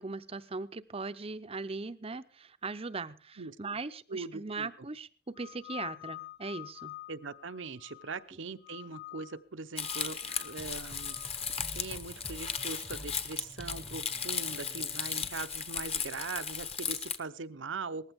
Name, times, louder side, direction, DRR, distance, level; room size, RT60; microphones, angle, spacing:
voice 1, 0.0-6.9, right 3 dB, 30° right, 13 dB, 0.7 m, -39 dB
voice 2, 4.1-4.7 7.1-11.2 11.7-18.1, right 4 dB, 70° right, 11 dB, 0.8 m, -41 dB
sound 1, 5.4-8.3 8.6-9.4 9.8-11.3, left 18 dB, 60° left, 1.8 m, -47 dB
Crumpling crinkling, 9.8-17.2, left 7 dB, 30° left, 1.2 m, -36 dB
sound 2, 10.6-15.9, equal, ahead, 0.9 m, -49 dB
19.0 x 15.0 x 3.6 m, 0.38 s
head